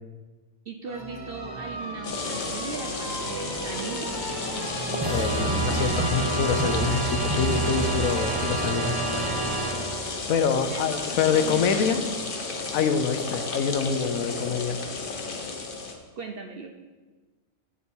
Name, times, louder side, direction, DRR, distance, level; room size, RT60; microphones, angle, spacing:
voice 1, 0.7-4.1 10.7-11.6 16.2-16.7, right 5 dB, 55° right, 3 dB, 0.6 m, -38 dB
sound 1, 0.9-10.4, right 2 dB, 20° right, 1.0 m, -29 dB
sound 2, 2.0-16.0, left 3 dB, 45° left, 0.9 m, -33 dB
voice 2, 5.1-9.1 10.0-12.1 12.7-14.8, left 6 dB, 80° left, 9 dB, 1.1 m, -26 dB
8.9 x 6.9 x 4.5 m, 1.3 s
omnidirectional pair, 1.5 m